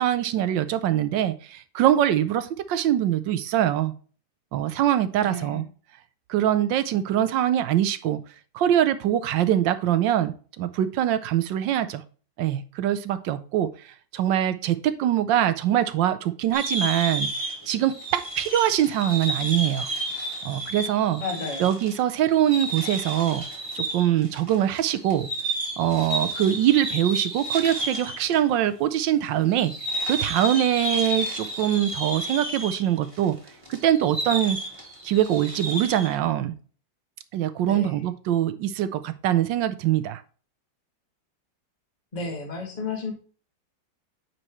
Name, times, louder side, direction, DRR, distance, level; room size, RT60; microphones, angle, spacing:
voice 1, 0.0-3.9 4.5-5.7 6.3-8.2 8.5-12.0 12.4-13.7 14.1-17.3 17.7-19.9 20.4-21.2 21.6-23.4 23.7-25.3 25.8-29.7 30.1-33.4 33.7-34.6 35.0-36.5 37.3-40.2, right 11 dB, 75° right, 13 dB, 1.3 m, -23 dB
voice 2, 5.2-5.6 21.2-21.7 37.6-38.1 42.1-43.1, left 4 dB, 25° left, 2 dB, 1.7 m, -33 dB
sound 1, 16.5-28.4 28.7-28.8 29.5-36.1, right 1 dB, 15° right, 1.8 m, -31 dB
9.0 x 4.6 x 3.0 m, 0.39 s
omnidirectional pair, 2.1 m